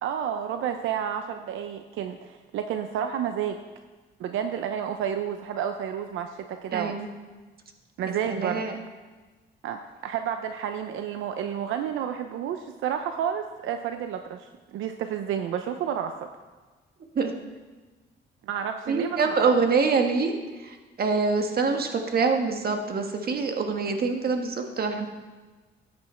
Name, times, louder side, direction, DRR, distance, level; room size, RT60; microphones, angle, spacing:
voice 1, 0.0-3.6 4.2-7.0 8.0-8.6 9.6-14.5 14.7-16.3 18.5-19.5, right 9 dB, 80° right, 7 dB, 0.7 m, -30 dB
voice 2, 6.7-7.1 8.3-8.8 17.1-17.3 18.9-25.1, right 4 dB, 50° right, 4 dB, 1.6 m, -25 dB
14.0 x 8.7 x 4.4 m, 1.3 s
cardioid pair, 90°, 20 cm